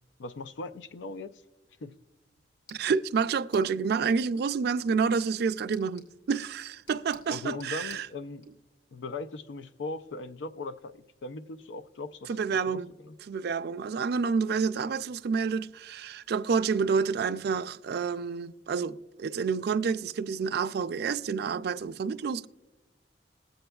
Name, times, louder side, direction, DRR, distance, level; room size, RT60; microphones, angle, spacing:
voice 1, 0.2-1.4 1.8-1.9 7.3-8.4 8.9-13.1, left 3 dB, 85° left, 0.5 m, -39 dB
sound 1, 1.9-8.5, left 1 dB, 70° left, 1.7 m, -57 dB
voice 2, 2.7-8.1 12.3-12.9 13.2-22.5, right 5 dB, 60° right, 0.4 m, -29 dB
20.5 x 7.8 x 2.3 m
head